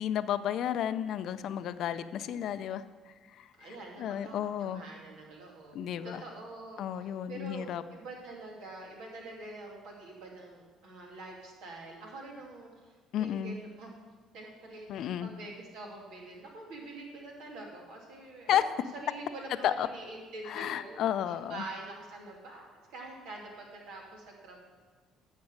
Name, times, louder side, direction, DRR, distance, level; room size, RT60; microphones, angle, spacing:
voice 1, 0.0-2.8 3.4-3.5 4.0-4.8 5.7-6.2 6.8-7.8 13.1-13.6 14.9-15.3 18.5-18.6 19.6-19.9 20.5-21.6, left 10 dB, 65° left, 13 dB, 0.5 m, -32 dB
voice 2, 3.6-12.9 13.2-14.1 14.3-18.6 18.9-24.6, right 2 dB, 75° right, -1 dB, 2.4 m, -46 dB
9.6 x 6.3 x 6.5 m, 1.4 s
supercardioid pair, 80°, 0 cm